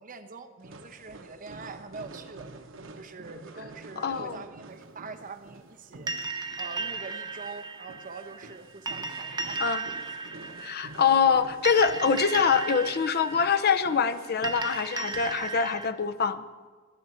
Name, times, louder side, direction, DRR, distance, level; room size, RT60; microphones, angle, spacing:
voice 1, 0.0-2.5 3.0-6.1 6.6-9.8, right 4 dB, 45° right, 7 dB, 0.9 m, -44 dB
sound 1, 0.6-15.5, right 2 dB, 90° right, 1.0 m, -48 dB
voice 2, 4.0-4.4 9.6-9.8 10.6-16.4, left 6 dB, 55° left, 10 dB, 0.6 m, -24 dB
sound 2, 6.1-15.9, right 4 dB, 20° right, 1.1 m, -36 dB
18.5 x 10.0 x 4.3 m, 1.5 s
head